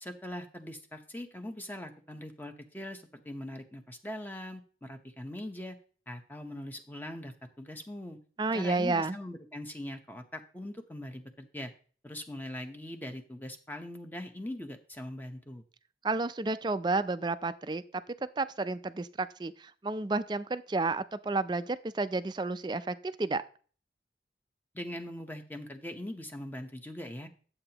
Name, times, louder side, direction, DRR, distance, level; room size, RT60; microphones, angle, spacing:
voice 1, 0.0-5.8 6.1-8.2 8.5-11.7 12.0-15.6 24.7-27.3, left 1 dB, 10° left, 5 dB, 0.8 m, -41 dB
voice 2, 8.4-9.2 16.0-17.8 18.4-23.4, right 3 dB, 25° right, 13 dB, 0.4 m, -31 dB
11.0 x 7.8 x 2.9 m, 0.42 s
head